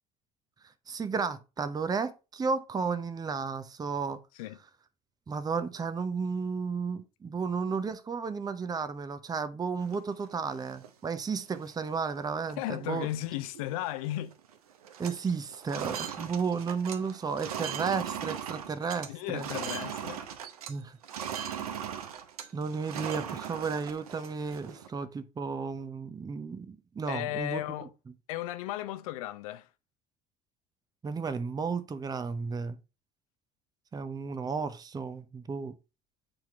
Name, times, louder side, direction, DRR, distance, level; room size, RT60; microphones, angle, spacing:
voice 1, 0.9-4.2 5.3-13.1 15.0-19.5 20.7-21.0 22.5-27.6 31.0-32.8 33.9-35.8, right 5 dB, 20° right, 0.7 m, -33 dB
sound 1, 9.8-10.9 11.3-11.4 11.7-12.1 12.5-12.7 13.0-14.1 14.3-14.6 14.8-20.7 21.0-24.9, right 8 dB, 75° right, 0.8 m, -39 dB
voice 2, 12.6-14.3 19.0-20.3 27.1-27.9 28.3-29.7, left 14 dB, 65° left, 0.7 m, -35 dB
7.8 x 4.4 x 3.5 m
figure-of-eight pair, 60°, 20 cm